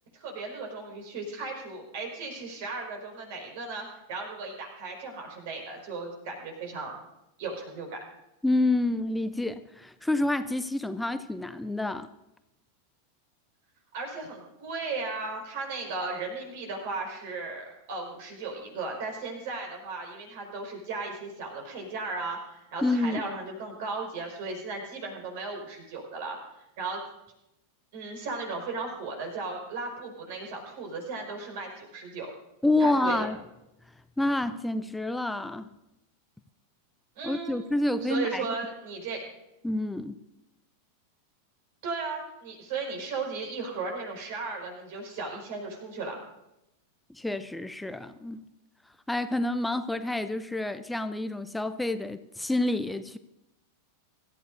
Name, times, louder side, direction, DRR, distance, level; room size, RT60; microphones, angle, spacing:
voice 1, 0.1-7.0 7.4-8.0 13.9-26.4 26.8-27.0 27.9-32.3 32.8-33.3 37.1-37.6 38.0-39.2 41.8-46.2, right 3 dB, 50° right, 1 dB, 5.1 m, -36 dB
voice 2, 8.4-12.1 22.8-23.2 32.6-33.4 34.2-35.7 37.2-38.5 39.6-40.2 47.1-48.5 49.1-53.2, left 2 dB, 5° left, 11 dB, 0.6 m, -28 dB
25.0 x 14.5 x 2.7 m, 0.89 s
figure-of-eight pair, 90°, 0 cm